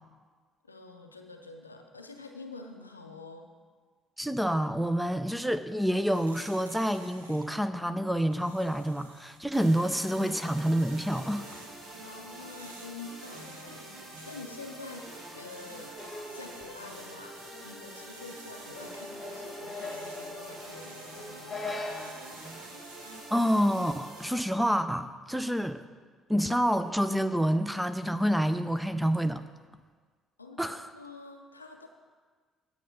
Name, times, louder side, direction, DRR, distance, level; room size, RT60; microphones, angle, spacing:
voice 1, 0.6-3.5 11.9-21.7 30.4-31.9, left 3 dB, 85° left, 5 dB, 0.5 m, -47 dB
voice 2, 4.2-11.5 22.4-22.6 23.3-25.8 26.3-29.4 30.6-30.9, equal, 5° right, 10 dB, 0.5 m, -28 dB
sound 1, 5.7-23.4, right 3 dB, 80° right, 0.7 m, -55 dB
sound 2, 9.5-24.3, right 1 dB, 65° right, 2.0 m, -46 dB
sound 3, 16.0-22.3, left 2 dB, 25° left, 1.2 m, -42 dB
9.4 x 6.6 x 5.5 m, 1.5 s
figure-of-eight pair, 50°, 0 cm